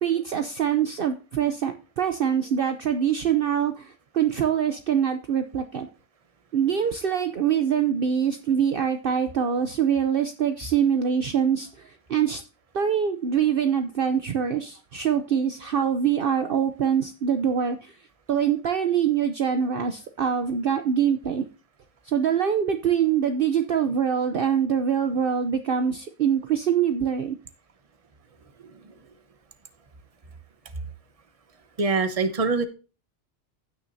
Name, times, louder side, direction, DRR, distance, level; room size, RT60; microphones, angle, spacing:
voice 1, 0.0-5.9 6.5-12.4 12.7-17.9 18.3-21.4 22.1-27.4, right 8 dB, 55° right, 8 dB, 0.9 m, -24 dB
voice 2, 31.8-32.6, right 4 dB, 30° right, 9 dB, 1.0 m, -24 dB
16.0 x 6.2 x 2.7 m, 0.33 s
omnidirectional pair, 1.2 m